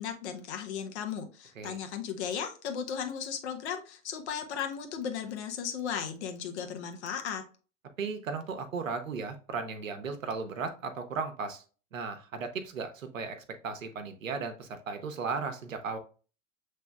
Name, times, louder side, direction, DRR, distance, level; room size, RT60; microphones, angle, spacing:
voice 1, 0.0-7.4, left 8 dB, 55° left, 5 dB, 1.0 m, -36 dB
voice 2, 8.0-11.6 11.9-13.4 13.6-16.0, right 5 dB, 75° right, 6 dB, 0.9 m, -36 dB
6.9 x 3.2 x 2.2 m, 0.37 s
figure-of-eight pair, 90°, 40 cm